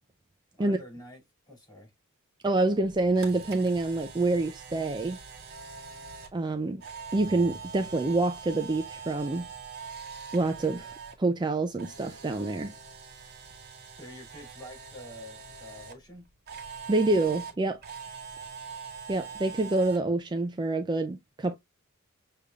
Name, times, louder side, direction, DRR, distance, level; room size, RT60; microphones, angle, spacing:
voice 1, 0.6-1.2 1.5-1.9 13.9-16.2, left 1 dB, 20° left, 2.8 m, -47 dB
voice 2, 2.4-5.2 6.3-6.8 7.1-9.5 10.3-10.9 11.2-12.7 16.9-17.8 19.1-21.6, right 2 dB, 20° right, 0.4 m, -27 dB
Camera, 2.8-11.2 11.5-15.9 16.5-20.0, right 5 dB, 50° right, 1.7 m, -43 dB
6.7 x 3.4 x 2.3 m
head